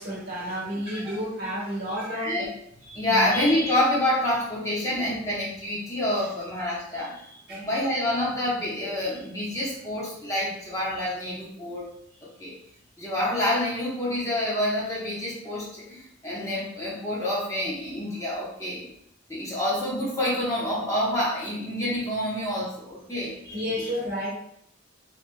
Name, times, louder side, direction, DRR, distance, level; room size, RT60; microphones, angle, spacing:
voice 1, 0.0-2.3 3.1-3.3 7.5-7.7 23.1-23.2 23.5-24.3, equal, 50° right, -4 dB, 1.1 m, -31 dB
voice 2, 2.1-2.5 2.8-11.9 12.4-12.5 13.0-18.9 19.3-23.9, left 1 dB, 15° left, -6 dB, 0.7 m, -27 dB
3.2 x 2.2 x 3.1 m, 0.73 s
head